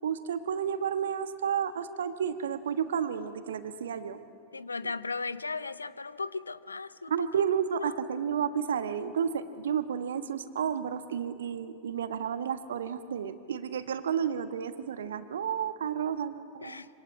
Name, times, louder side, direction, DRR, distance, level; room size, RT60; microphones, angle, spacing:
voice 1, 0.0-4.2 7.1-16.8, right 8 dB, 65° right, 10 dB, 1.3 m, -31 dB
voice 2, 4.5-7.3 7.8-8.0 16.6-16.9, left 4 dB, 80° left, 17 dB, 0.7 m, -36 dB
26.0 x 25.0 x 8.7 m, 2.6 s
figure-of-eight pair, 90°, 0 cm